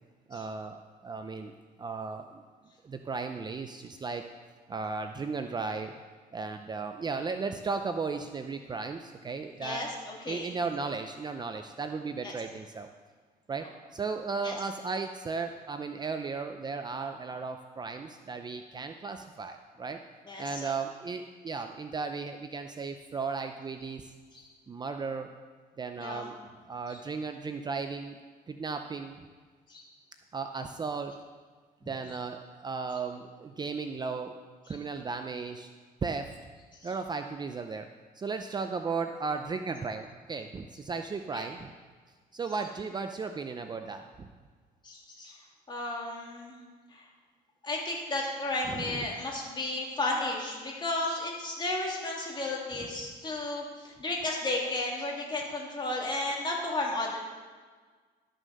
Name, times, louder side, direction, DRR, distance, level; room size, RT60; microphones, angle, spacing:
voice 1, 0.3-2.4 2.8-4.3 4.7-5.9 6.3-9.9 10.3-12.9 13.5-20.0 20.4-24.1 24.7-25.3 25.8-26.4 26.7-28.2 28.5-29.2 30.3-31.1 31.9-34.4 34.7-35.7 36.0-36.3 36.8-37.9 38.1-41.7 42.3-44.3 48.7-49.2 52.8-52.9, right 4 dB, 25° right, 6 dB, 0.6 m, -35 dB
voice 2, 9.6-10.5 12.2-12.3 14.4-14.5 20.3-20.8 24.3-24.4 26.0-26.3 26.9-27.0 29.7-29.9 41.3-41.5 44.8-45.4 45.7-46.6 46.9-47.1 47.6-57.2, left 2 dB, 25° left, -2 dB, 2.8 m, -33 dB
13.0 x 6.4 x 6.6 m, 1.5 s
cardioid pair, 110°, 17 cm